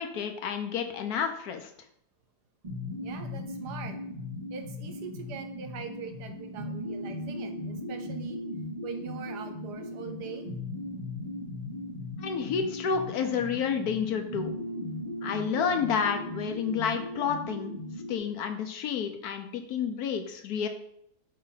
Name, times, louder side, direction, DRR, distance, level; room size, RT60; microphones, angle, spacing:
voice 1, 0.0-1.7 12.2-14.5 15.2-17.7 18.1-20.7, left 7 dB, 70° left, 7 dB, 1.1 m, -30 dB
sound 1, 2.6-18.2, left 1 dB, 30° right, 2.7 m, -38 dB
voice 2, 3.0-4.0 4.5-8.4 8.8-10.5, right 6 dB, 75° right, 7 dB, 1.3 m, -42 dB
7.8 x 3.2 x 4.0 m, 0.71 s
omnidirectional pair, 1.8 m